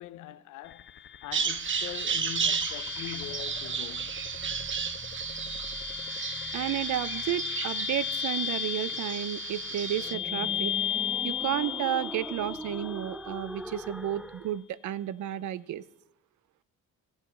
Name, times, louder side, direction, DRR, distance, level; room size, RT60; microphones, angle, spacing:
voice 1, 0.0-4.2, left 13 dB, 90° left, 0.6 m, -43 dB
sound 1, 0.6-13.6, left 11 dB, 40° left, 0.4 m, -36 dB
sound 2, 1.3-14.6, right 1 dB, 5° right, 0.6 m, -44 dB
Bird vocalization bird call bird song, 1.3-10.1, right 6 dB, 40° right, 1.1 m, -33 dB
voice 2, 6.5-10.7 11.2-15.8, right 12 dB, 75° right, 0.6 m, -32 dB
15.5 x 7.1 x 5.5 m
cardioid pair, 90°, 30 cm